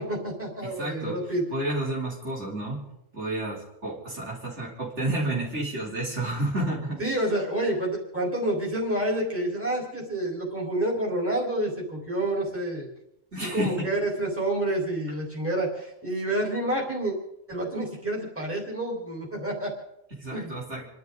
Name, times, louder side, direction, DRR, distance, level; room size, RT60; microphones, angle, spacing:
voice 1, 0.0-1.4 7.0-12.9 13.4-17.2 17.5-19.7 20.3-20.5, right 1 dB, 10° right, -2 dB, 4.2 m, -28 dB
voice 2, 0.6-1.2 1.5-2.8 3.1-7.0 13.3-13.9 20.1-20.9, right 1 dB, 60° right, -4 dB, 3.9 m, -30 dB
29.5 x 12.0 x 3.9 m, 0.82 s
omnidirectional pair, 1.4 m